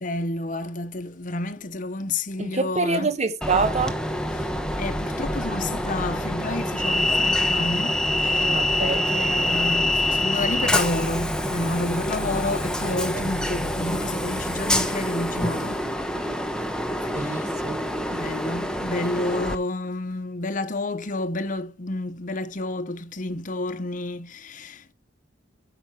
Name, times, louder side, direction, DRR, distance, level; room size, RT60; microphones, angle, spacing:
voice 1, 0.0-3.1 4.3-4.5 4.8-8.0 8.2-8.5 8.8-15.8 17.1-17.5 18.1-24.9, left 2 dB, 45° left, 0.9 m, -30 dB
voice 2, 2.4-4.0 8.4-9.0 13.1-13.3 17.1-17.9, right 3 dB, 35° right, 1.0 m, -26 dB
Train, 3.4-19.6, left 1 dB, 5° left, 1.0 m, -26 dB
8.8 x 5.9 x 4.7 m
head